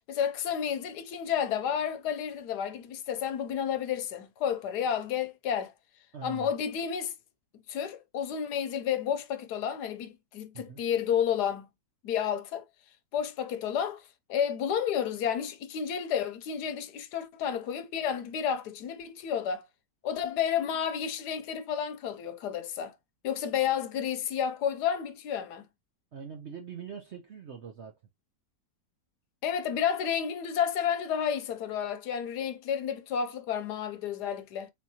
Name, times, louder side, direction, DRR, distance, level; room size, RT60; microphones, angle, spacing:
voice 1, 0.1-5.7 6.2-7.1 7.7-11.7 12.0-12.6 13.1-19.7 20.0-22.9 23.2-25.6 29.4-34.7, left 8 dB, 70° left, 1.2 m, -31 dB
voice 2, 6.1-6.5 10.5-10.8 26.1-27.9, right 7 dB, 65° right, 0.7 m, -43 dB
4.2 x 3.7 x 2.8 m
omnidirectional pair, 1.9 m